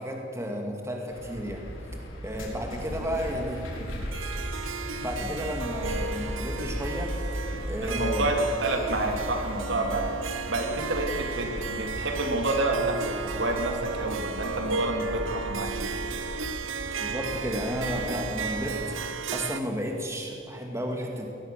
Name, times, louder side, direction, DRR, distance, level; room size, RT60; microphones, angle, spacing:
voice 1, 0.0-1.7 2.2-3.7 5.0-7.4 7.7-8.3 17.0-18.9 19.3-21.3, equal, 15° right, 2 dB, 2.1 m, -32 dB
sound 1, 1.1-19.0, equal, 85° left, 4.9 m, -37 dB
Harp, 4.1-19.6, right 5 dB, 85° right, 0.9 m, -34 dB
voice 2, 7.8-10.1 10.5-15.9, right 2 dB, 65° right, 3 dB, 2.9 m, -29 dB
21.0 x 19.5 x 6.6 m, 2.9 s
head